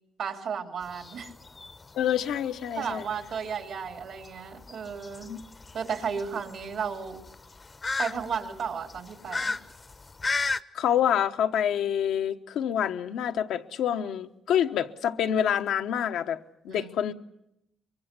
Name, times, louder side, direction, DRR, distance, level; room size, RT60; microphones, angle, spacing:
voice 1, 0.2-1.3 2.8-5.3 5.7-7.2 8.0-9.6 16.7-17.1, right 6 dB, 70° right, 2.9 m, -34 dB
sound 1, 0.8-10.6, left 3 dB, 30° left, 0.8 m, -35 dB
voice 2, 1.9-3.1 5.3-5.4 10.7-16.4 16.6-17.1, left 9 dB, 80° left, 1.1 m, -27 dB
24.0 x 23.0 x 6.8 m
cardioid pair, 90°, 0 cm